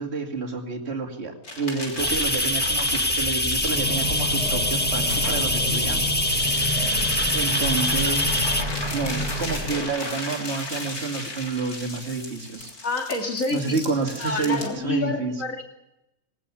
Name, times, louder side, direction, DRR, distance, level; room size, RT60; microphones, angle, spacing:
voice 1, 0.0-6.0 7.3-8.3 8.9-12.7 13.5-15.3, right 4 dB, 45° right, 2 dB, 2.7 m, -29 dB
sound 1, 1.4-14.7, left 2 dB, 90° left, 3.8 m, -35 dB
sound 2, 2.0-8.6, left 1 dB, 5° left, 1.1 m, -24 dB
sound 3, 3.6-9.8, equal, 25° left, 3.3 m, -30 dB
voice 2, 12.8-13.8 14.2-15.6, left 3 dB, 60° left, 2 dB, 3.2 m, -28 dB
19.5 x 18.5 x 7.1 m, 0.88 s
omnidirectional pair, 1.6 m